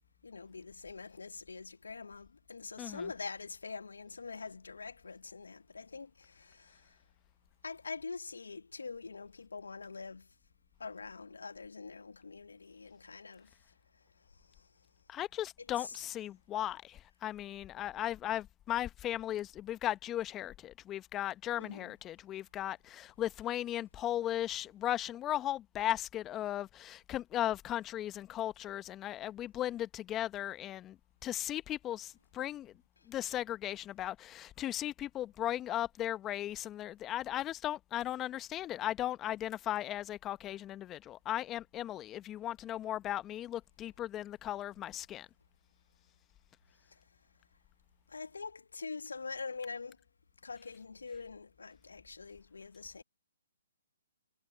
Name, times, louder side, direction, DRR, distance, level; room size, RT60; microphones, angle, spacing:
voice 1, 0.2-7.0 7.6-10.3 10.8-13.5 15.8-16.0 21.5-21.9 48.1-50.0 50.4-53.0, left 4 dB, 80° left, 1.0 m, -44 dB
voice 2, 2.8-3.1 15.1-31.0 31.2-32.7 33.1-45.3, left 12 dB, 20° left, 1.0 m, -37 dB
figure-of-eight pair, 135°, 0 cm